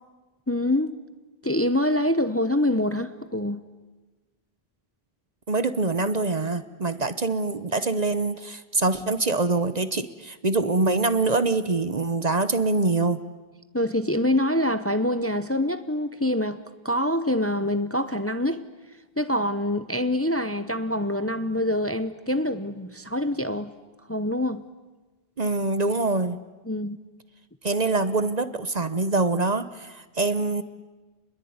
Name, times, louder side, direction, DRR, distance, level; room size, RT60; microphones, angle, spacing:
voice 1, 0.5-1.0 1.4-3.6 13.7-16.6 16.8-18.6 19.2-23.7 24.1-24.6 26.7-27.0, left 1 dB, 15° left, 0.9 m, -25 dB
voice 2, 5.5-13.2 25.4-26.4 27.6-30.6, right 3 dB, 40° right, 1.0 m, -24 dB
29.0 x 21.5 x 9.6 m
omnidirectional pair, 1.1 m